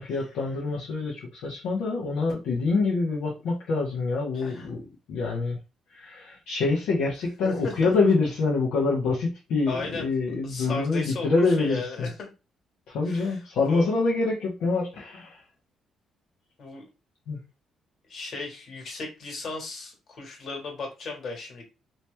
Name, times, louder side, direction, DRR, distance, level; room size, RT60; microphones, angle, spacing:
voice 1, 0.0-5.6 5.9-12.1 12.9-15.4 17.3-17.4, left 3 dB, 85° left, -4 dB, 1.1 m, -26 dB
voice 2, 4.3-4.7 7.4-7.9 9.7-10.1 10.4-12.3 13.1-13.9 16.6-16.8 18.1-21.6, left 3 dB, 60° left, 1 dB, 1.8 m, -36 dB
3.0 x 3.0 x 3.3 m, 0.28 s
cardioid pair, 90°, 0 cm